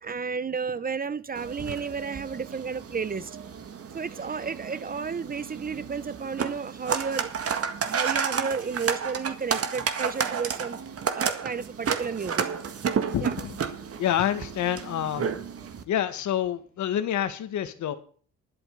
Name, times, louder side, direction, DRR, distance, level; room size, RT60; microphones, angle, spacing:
voice 1, 0.0-3.3 3.9-7.3 7.8-10.8 11.1-12.5 13.2-13.3, right 5 dB, 30° right, 0.8 m, -32 dB
sound 1, 1.3-15.8, right 6 dB, 50° right, 1.7 m, -31 dB
voice 2, 13.1-13.6 13.9-15.3 15.9-17.9, left 10 dB, 70° left, 1.6 m, -28 dB
12.0 x 8.1 x 6.7 m
cardioid pair, 90°, 30 cm